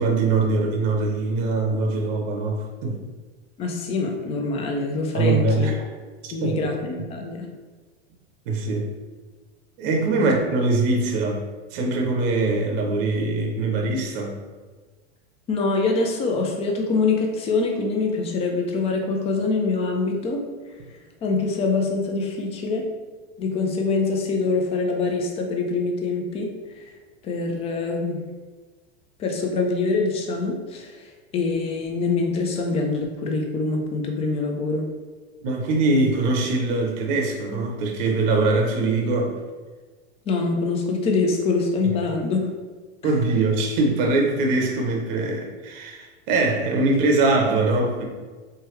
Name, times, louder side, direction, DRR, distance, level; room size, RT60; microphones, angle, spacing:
voice 1, 0.0-3.0 5.1-5.8 6.2-6.7 8.5-8.9 9.8-11.4 11.7-14.4 35.4-39.4 43.0-48.1, right 3 dB, 55° right, 1 dB, 0.6 m, -22 dB
voice 2, 3.6-5.7 6.3-7.5 10.2-10.3 15.5-20.4 21.2-22.9 23.4-26.5 26.7-26.8 27.2-28.2 29.2-34.9 40.3-42.4 43.0-43.1, left 3 dB, 20° left, 2 dB, 0.3 m, -24 dB
3.1 x 2.2 x 3.1 m, 1.4 s
hypercardioid pair, 120°, 34 cm